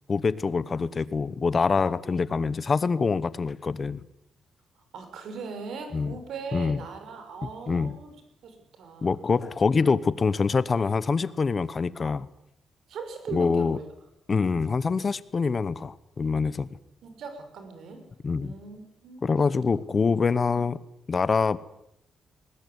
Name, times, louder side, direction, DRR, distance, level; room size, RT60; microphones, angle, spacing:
voice 1, 0.1-4.0 5.9-6.2 6.5-6.8 7.4-8.0 9.0-12.3 13.3-13.8 14.3-16.7 18.2-18.5 19.2-20.8 21.1-21.6, left 4 dB, 30° left, 17 dB, 1.0 m, -25 dB
voice 2, 4.9-8.1 8.4-9.2 12.9-13.9 17.0-18.0 18.4-19.6, right 5 dB, 70° right, 7 dB, 6.1 m, -39 dB
20.0 x 20.0 x 9.7 m, 0.80 s
cardioid pair, 155°, 0 cm